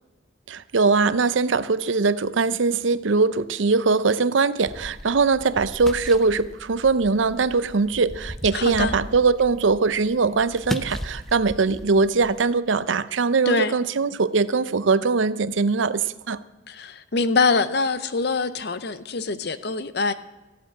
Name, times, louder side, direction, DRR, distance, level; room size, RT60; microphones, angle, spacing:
voice 1, 0.5-16.4, right 4 dB, 75° right, 0.6 m, -21 dB
sound 1, 4.6-12.5, equal, ahead, 0.6 m, -37 dB
voice 2, 8.5-9.0 13.5-13.8 16.7-20.1, left 4 dB, 55° left, 0.7 m, -24 dB
14.5 x 8.1 x 8.7 m
head